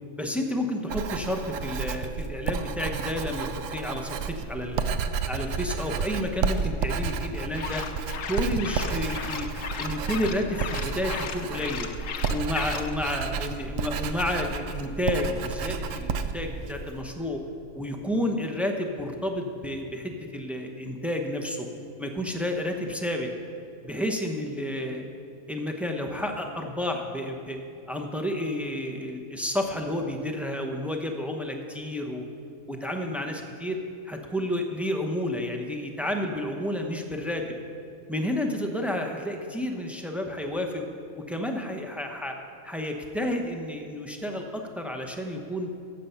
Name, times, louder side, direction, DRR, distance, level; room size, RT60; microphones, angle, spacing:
voice 1, 0.2-4.8 5.3-7.8 8.3-9.5 9.8-11.9 12.3-17.4 17.7-21.7 22.0-23.3 23.8-25.0 25.5-27.6 27.9-32.2 32.7-33.8 34.1-37.4 38.1-40.8 41.3-42.4 42.6-45.7, left 1 dB, ahead, 2 dB, 0.6 m, -30 dB
Writing, 0.9-17.0, right 5 dB, 75° right, 1.0 m, -31 dB
sound 1, 7.5-12.9, left 7 dB, 70° left, 1.1 m, -36 dB
14.5 x 6.6 x 5.7 m, 2.5 s
omnidirectional pair, 1.4 m